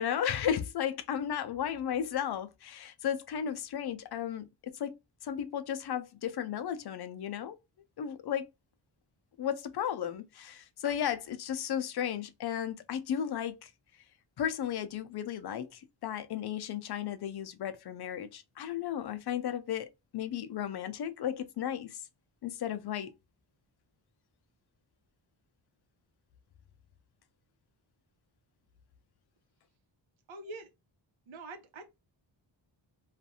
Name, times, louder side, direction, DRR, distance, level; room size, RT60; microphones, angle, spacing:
voice 1, 0.0-5.0 5.2-7.6 8.0-8.5 9.4-13.7 14.4-22.0 22.4-23.1, left 9 dB, 60° left, 0.5 m, -34 dB
voice 2, 30.3-30.7 31.3-31.9, right 2 dB, 85° right, 0.8 m, -44 dB
2.5 x 2.4 x 2.7 m
wide cardioid pair, 100°, 46 cm